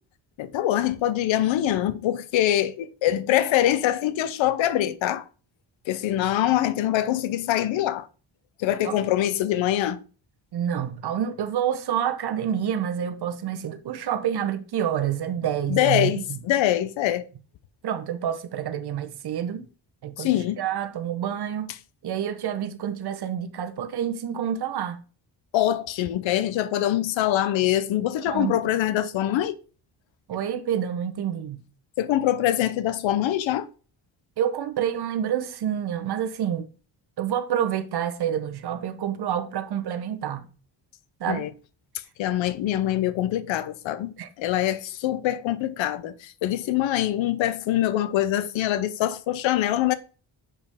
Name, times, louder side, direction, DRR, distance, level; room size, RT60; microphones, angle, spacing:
voice 1, 0.4-5.2 5.9-8.1 8.6-10.0 15.7-17.3 20.2-20.6 25.5-29.6 32.0-33.7 41.3-41.5 42.2-49.9, left 12 dB, 85° left, 0.7 m, -24 dB
voice 2, 10.5-16.4 17.8-19.7 20.0-21.7 22.0-25.0 28.3-28.5 30.3-31.6 34.4-36.7 37.2-40.5 41.2-41.5 44.2-44.3, right 9 dB, 60° right, 1.0 m, -28 dB
6.9 x 5.3 x 3.5 m
cardioid pair, 120°, 45 cm